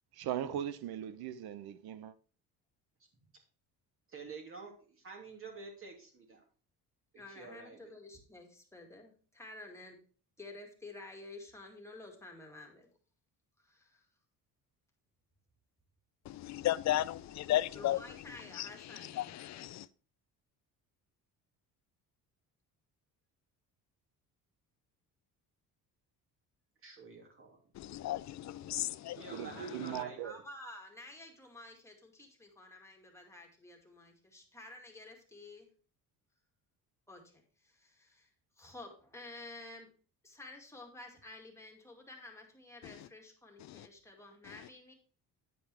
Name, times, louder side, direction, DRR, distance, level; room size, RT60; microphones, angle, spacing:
voice 1, 0.1-2.1 29.3-30.4, right 10 dB, 75° right, 0.9 m, -39 dB
voice 2, 4.1-6.4 7.1-7.9 26.8-27.6 29.1-30.3, right 4 dB, 35° right, 2.8 m, -49 dB
voice 3, 7.2-10.0 10.4-12.9 13.6-14.1 17.7-19.7 30.2-35.7 37.1-38.3 38.6-39.9 40.2-44.9, left 2 dB, 5° left, 2.2 m, -51 dB
voice 4, 16.3-18.0 18.5-18.7 19.2-19.9 27.8-29.2 43.7-43.9, left 14 dB, 50° left, 0.5 m, -34 dB
9.6 x 5.2 x 4.6 m
cardioid pair, 125°, 37 cm